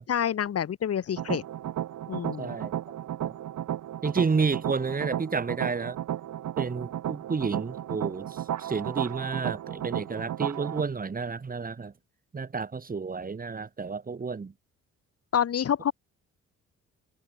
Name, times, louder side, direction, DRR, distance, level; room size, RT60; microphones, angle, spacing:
voice 1, 0.1-1.4 2.1-2.6 15.3-15.9, left 9 dB, 50° left, 1.7 m, -27 dB
sound 1, 1.2-10.8, right 11 dB, 70° right, 4.0 m, -34 dB
voice 2, 2.4-2.7 3.2-3.3 4.0-6.0 6.6-11.9 12.3-14.5, right 4 dB, 30° right, 2.1 m, -31 dB
cardioid pair, 90°, 30 cm